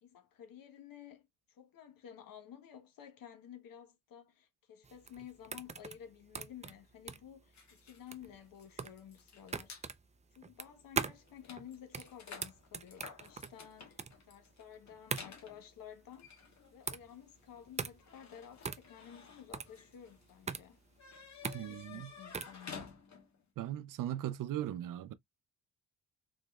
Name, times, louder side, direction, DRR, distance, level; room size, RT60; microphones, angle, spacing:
voice 1, 0.0-9.8 10.3-20.8 21.4-23.0, left 9 dB, 80° left, 1.1 m, -53 dB
sound 1, 4.8-22.6, right 5 dB, 20° right, 0.4 m, -42 dB
sound 2, 7.5-9.9 10.6-10.7 11.0-23.4, left 6 dB, 55° left, 1.4 m, -53 dB
voice 2, 21.5-22.1 23.6-25.1, right 12 dB, 70° right, 0.5 m, -38 dB
3.8 x 3.1 x 2.3 m
cardioid pair, 90°, 33 cm